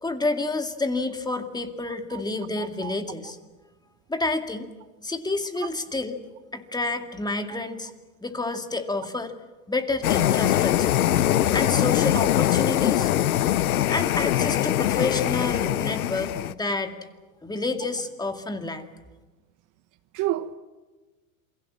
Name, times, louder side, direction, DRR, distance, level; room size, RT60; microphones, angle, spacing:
voice 1, 0.0-3.4 4.1-4.7 5.0-6.2 6.5-7.9 8.2-9.3 9.7-11.0 11.5-13.1 13.9-17.0 17.4-18.9, left 3 dB, 10° left, 2.2 m, -29 dB
voice 2, 2.6-2.9 20.1-20.5, right 14 dB, 45° right, 1.2 m, -30 dB
sound 1, 10.0-16.5, left 12 dB, 90° left, 0.9 m, -22 dB
28.0 x 22.5 x 7.4 m
hypercardioid pair, 105°, 42 cm